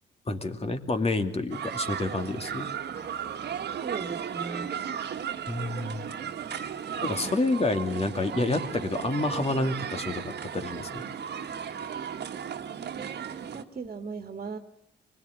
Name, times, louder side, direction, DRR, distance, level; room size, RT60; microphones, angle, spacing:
voice 1, 0.3-2.7 5.5-6.0 7.0-11.0, left 2 dB, 30° left, 7 dB, 2.7 m, -29 dB
sound 1, 1.5-13.6, right 8 dB, 55° right, 1.7 m, -35 dB
voice 2, 3.8-4.9 12.9-13.1 13.5-14.6, right 4 dB, 40° right, 6 dB, 2.0 m, -38 dB
24.5 x 21.0 x 9.7 m, 0.77 s
cardioid pair, 90°, 20 cm